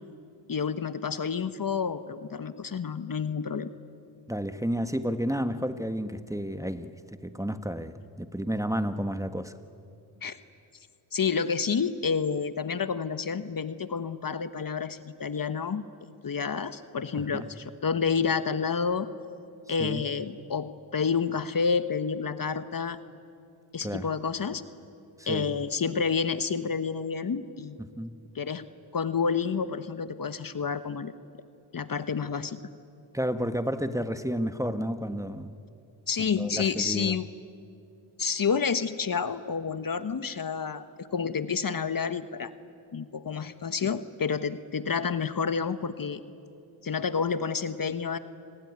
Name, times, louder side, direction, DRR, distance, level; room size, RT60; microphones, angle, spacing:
voice 1, 0.5-3.7 10.2-10.4 11.1-15.8 16.2-19.1 19.7-23.0 23.7-24.6 25.3-27.8 28.3-28.6 28.9-31.1 31.7-32.6 36.1-37.3 38.2-42.5 42.9-46.2 46.8-48.2, left 6 dB, 45° left, 12 dB, 1.2 m, -29 dB
voice 2, 4.3-7.0 7.2-9.5 17.2-17.5 19.8-20.0 23.8-24.1 25.2-25.5 27.8-28.2 33.1-35.5 36.2-37.1, equal, 5° right, 10 dB, 1.5 m, -31 dB
28.5 x 20.5 x 9.7 m, 2.5 s
cardioid pair, 60°, 48 cm